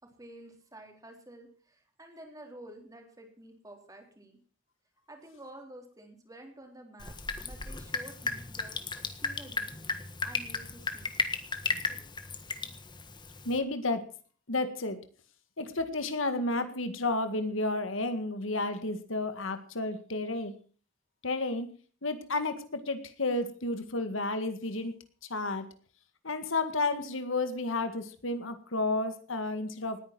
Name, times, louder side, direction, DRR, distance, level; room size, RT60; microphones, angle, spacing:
voice 1, 0.0-4.4 5.1-7.1 7.4-8.8 9.2-9.7 10.2-11.1, right 1 dB, 15° right, 3 dB, 3.8 m, -50 dB
Drip, 7.0-13.6, left 4 dB, 20° left, 1.6 m, -35 dB
voice 2, 13.5-14.1 14.5-15.0 15.6-20.5 21.2-21.7 22.0-24.9 25.3-25.7 26.2-30.0, left 2 dB, 75° left, 10 dB, 1.9 m, -31 dB
19.5 x 9.9 x 6.0 m, 0.41 s
head